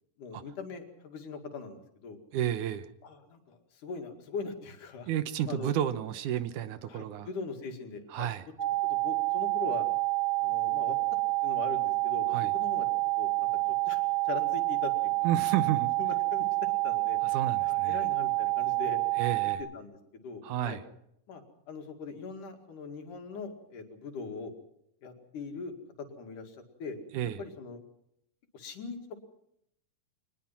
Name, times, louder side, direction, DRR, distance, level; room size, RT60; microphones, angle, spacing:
voice 1, 0.2-2.2 3.0-5.1 5.5-5.7 6.9-8.3 8.8-9.9 10.4-11.0 11.4-12.9 13.2-15.3 16.0-16.5 16.8-17.2 17.6-19.0 19.4-20.8 21.3-24.5 25.0-25.7 26.2-27.8 28.5-29.2, left 4 dB, 75° left, 3.8 m, -41 dB
voice 2, 2.3-2.9 5.1-7.3 8.1-8.5 12.3-12.5 15.2-15.9 17.3-18.0 19.2-19.6 20.4-20.8 27.1-27.4, right 11 dB, 75° right, 2.4 m, -31 dB
sound 1, 8.6-19.6, right 22 dB, 20° right, 2.8 m, -28 dB
23.5 x 20.0 x 5.9 m
omnidirectional pair, 3.6 m